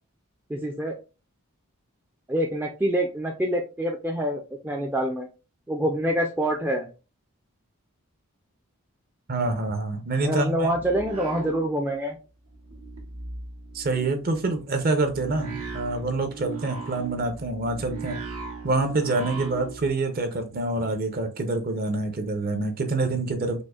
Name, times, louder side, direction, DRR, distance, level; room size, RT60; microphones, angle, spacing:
voice 1, 0.5-1.0 2.3-5.3 5.7-6.9 10.2-12.2, right 1 dB, 10° right, 0.3 m, -26 dB
voice 2, 9.3-10.7 13.7-18.2 18.6-23.6, right 2 dB, 45° right, 0.6 m, -26 dB
sound 1, 10.6-12.2 12.4-19.9, right 5 dB, 85° right, 1.0 m, -38 dB
5.0 x 2.1 x 2.3 m
head